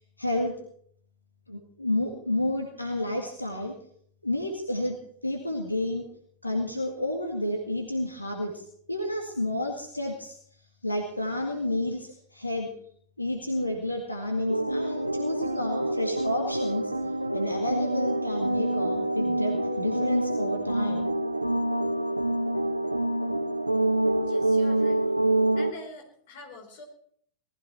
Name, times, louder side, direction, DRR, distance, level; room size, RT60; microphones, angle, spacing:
voice 1, 0.2-0.5 1.5-3.7 4.2-5.0 5.2-6.1 6.4-10.4 10.8-12.7 13.2-16.9 17.3-21.1, left 1 dB, 85° left, 2 dB, 1.9 m, -30 dB
sound 1, 14.5-25.7, right 1 dB, 85° right, 0.8 m, -26 dB
voice 2, 24.2-25.1 25.6-26.8, left 3 dB, 50° left, 4 dB, 4.5 m, -46 dB
19.0 x 14.5 x 4.5 m, 0.63 s
figure-of-eight pair, 90°, 0 cm